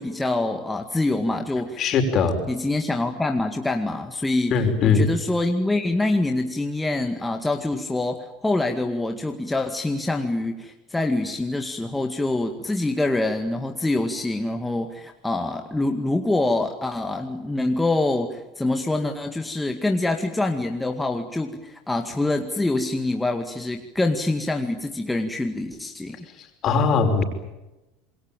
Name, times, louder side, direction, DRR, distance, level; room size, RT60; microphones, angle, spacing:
voice 1, 0.0-1.8 2.5-4.5 4.8-26.2, left 2 dB, 10° left, 4 dB, 2.1 m, -25 dB
voice 2, 1.8-2.4 4.5-5.1 26.6-27.2, left 5 dB, 45° left, 6 dB, 5.4 m, -20 dB
27.0 x 22.0 x 9.1 m, 1.0 s
hypercardioid pair, 90°, 0 cm